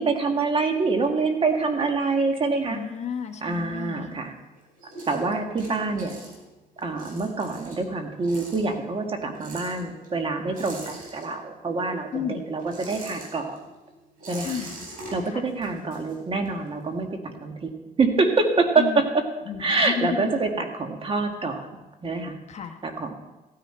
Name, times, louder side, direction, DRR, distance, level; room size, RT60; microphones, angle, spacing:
voice 1, 0.0-2.8 3.4-4.3 5.1-6.2 6.8-13.6 14.3-14.6 15.1-17.7 18.0-19.0 19.6-22.4 22.8-23.1, right 3 dB, 35° right, 4 dB, 1.7 m, -26 dB
sound 1, 2.6-4.2 4.5-11.7 12.0-16.7, right 2 dB, 55° right, 4.4 m, -43 dB
voice 2, 2.7-4.2 5.3-5.4 12.1-12.5 14.4-14.9 15.2-15.5 18.8-19.0 19.5-20.3 22.5-22.8, left 8 dB, 40° left, 5 dB, 1.1 m, -32 dB
15.0 x 9.8 x 4.4 m, 1.1 s
cardioid pair, 110°, 17 cm